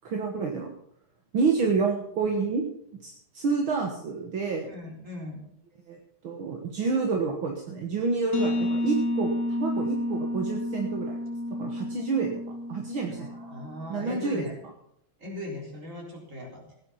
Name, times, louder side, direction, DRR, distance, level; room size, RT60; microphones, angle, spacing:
voice 1, 0.0-0.7 1.3-2.7 3.0-4.7 5.9-6.0 6.2-9.3 9.6-11.2 11.6-13.3 13.9-14.4, right 4 dB, 65° right, 2 dB, 2.3 m, -28 dB
voice 2, 4.7-5.5 13.0-14.5 15.2-16.8, left 1 dB, 35° right, -1 dB, 4.6 m, -39 dB
sound 1, 8.3-13.9, left 1 dB, 35° left, 1.9 m, -30 dB
16.5 x 9.7 x 5.8 m, 0.72 s
omnidirectional pair, 2.4 m